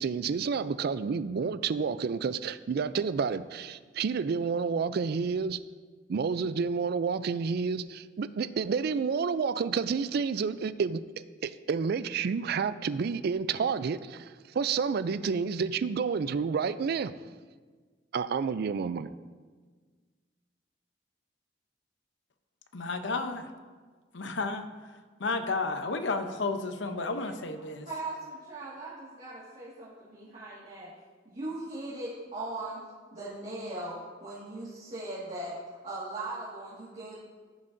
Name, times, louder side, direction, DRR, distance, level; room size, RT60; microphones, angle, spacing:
voice 1, 0.0-5.6 6.1-11.0 11.4-17.1 18.1-19.1, right 5 dB, 60° right, 14 dB, 0.4 m, -30 dB
voice 2, 22.7-23.5 24.1-24.7 25.2-27.9, left 3 dB, 75° left, 8 dB, 0.7 m, -32 dB
voice 3, 27.0-27.3 27.8-30.9 31.3-32.8 33.1-35.6 35.8-37.2, right 2 dB, 40° right, -10 dB, 1.8 m, -39 dB
14.5 x 7.3 x 2.6 m, 1.5 s
head